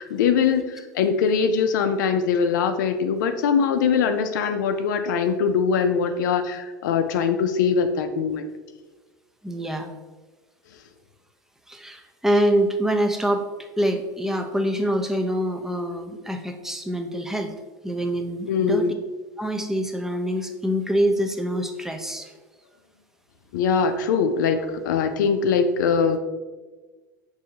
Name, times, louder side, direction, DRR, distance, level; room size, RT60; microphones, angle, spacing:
voice 1, 0.0-8.5 18.5-18.9 23.5-26.2, left 6 dB, 70° left, 8 dB, 0.4 m, -22 dB
voice 2, 9.4-9.9 11.7-17.5 17.8-18.9 19.4-22.3, equal, 5° right, 5 dB, 0.5 m, -25 dB
6.3 x 2.7 x 2.8 m, 1.3 s
hypercardioid pair, 80°, 11 cm